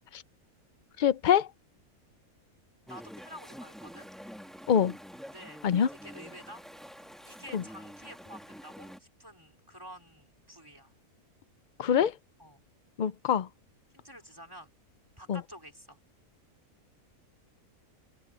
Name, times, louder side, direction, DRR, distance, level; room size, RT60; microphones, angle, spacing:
voice 1, 1.0-1.5 4.7-4.9 5.6-5.9 7.5-7.6 11.8-12.1 13.0-13.5 15.3-15.4, left 8 dB, 80° left, 0.4 m, -24 dB
Chatter / Stream, 2.9-9.0, equal, ahead, 1.6 m, -47 dB
voice 2, 2.9-4.1 5.3-6.6 7.2-10.9 12.4-12.6 13.9-14.7 15.2-16.0, equal, 15° right, 4.7 m, -49 dB
omnidirectional pair, 1.5 m